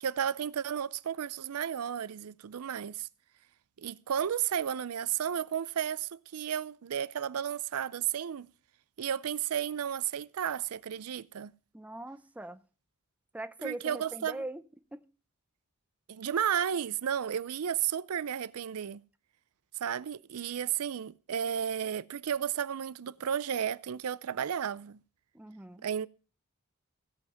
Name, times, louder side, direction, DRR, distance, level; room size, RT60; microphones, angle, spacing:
voice 1, 0.0-3.1 3.8-8.5 9.0-11.5 13.6-14.4 16.1-19.0 19.8-25.0 25.8-26.1, right 9 dB, 85° right, 0.5 m, -33 dB
voice 2, 11.7-12.6 13.3-14.6 14.9-15.0 25.3-25.9, right 1 dB, 5° right, 0.5 m, -41 dB
16.0 x 5.7 x 6.3 m
head